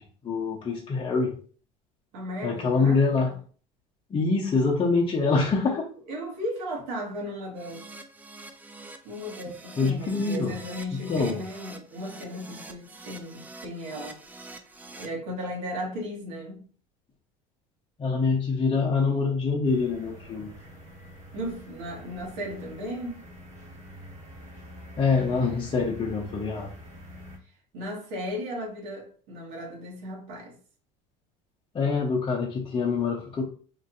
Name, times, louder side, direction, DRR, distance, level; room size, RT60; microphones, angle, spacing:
voice 1, 0.0-1.3 2.4-3.3 4.1-5.9 9.8-10.6 11.1-11.4 18.0-20.5 25.0-26.7 31.7-33.4, left 4 dB, 30° left, 0.8 m, -25 dB
voice 2, 2.1-3.3 5.6-5.8 6.1-7.9 9.0-14.2 14.9-16.6 21.3-23.2 27.7-30.5, equal, 75° right, 1.4 m, -36 dB
Keyboard (musical), 7.6-15.1, right 2 dB, 10° right, 0.4 m, -45 dB
sound 1, 19.6-27.4, equal, 40° right, 1.3 m, -46 dB
3.0 x 2.6 x 2.6 m
supercardioid pair, 90°, 18 cm